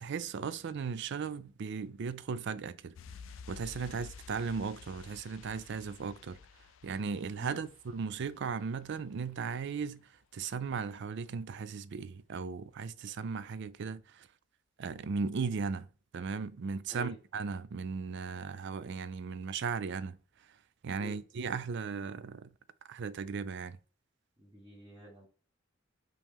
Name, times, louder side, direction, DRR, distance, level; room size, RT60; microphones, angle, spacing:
voice 1, 0.0-2.9 3.5-6.4 6.8-14.3 14.8-15.9 16.1-20.2 20.8-22.5 22.9-23.8, right 5 dB, 60° right, 0.4 m, -37 dB
sound 1, 2.9-9.5 9.7-9.8, left 6 dB, 75° left, 0.4 m, -52 dB
voice 2, 24.4-25.3, right 1 dB, 20° right, 1.0 m, -48 dB
5.1 x 2.9 x 3.6 m
head